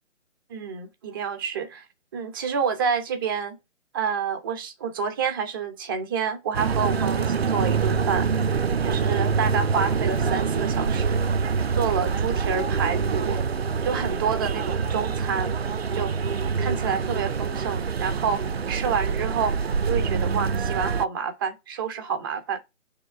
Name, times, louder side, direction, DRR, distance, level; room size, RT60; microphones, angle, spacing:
voice 1, 0.5-1.9 2.1-3.6 3.9-8.5 8.8-11.3 11.8-13.4 13.8-15.5 15.9-16.1 16.6-19.6 19.8-22.6, right 6 dB, 15° right, 1.1 m, -28 dB
sound 1, 6.5-21.1, right 5 dB, 50° right, 0.8 m, -25 dB
9.7 x 3.8 x 5.8 m
figure-of-eight pair, 150°, 39 cm